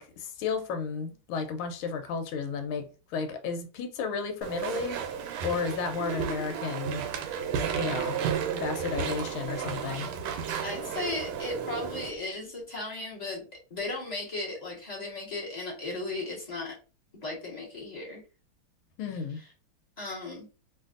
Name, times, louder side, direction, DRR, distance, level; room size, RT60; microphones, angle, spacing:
voice 1, 0.0-2.9 3.1-5.0 5.4-7.0 7.8-8.2 8.5-10.1 19.0-19.4, left 5 dB, 90° left, 1.5 m, -33 dB
Walk footsteps / Chatter / Squeak, 4.4-12.1, right 7 dB, 90° right, 1.5 m, -33 dB
voice 2, 10.6-13.4 13.7-16.7 17.2-18.2 20.0-20.5, left 2 dB, 25° left, 0.9 m, -36 dB
3.3 x 2.5 x 2.4 m
omnidirectional pair, 2.3 m